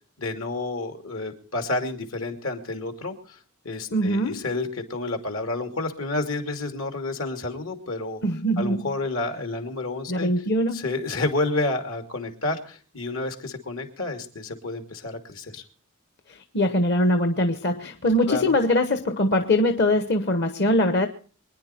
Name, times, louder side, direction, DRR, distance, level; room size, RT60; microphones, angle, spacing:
voice 1, 0.2-3.4 3.6-8.2 8.6-10.3 10.7-15.6 18.3-18.5, left 2 dB, 80° left, 6 dB, 2.6 m, -30 dB
voice 2, 3.9-4.4 8.2-8.9 10.1-10.8 16.3-21.1, left 1 dB, 55° left, 7 dB, 1.1 m, -22 dB
24.5 x 10.0 x 4.4 m, 0.42 s
head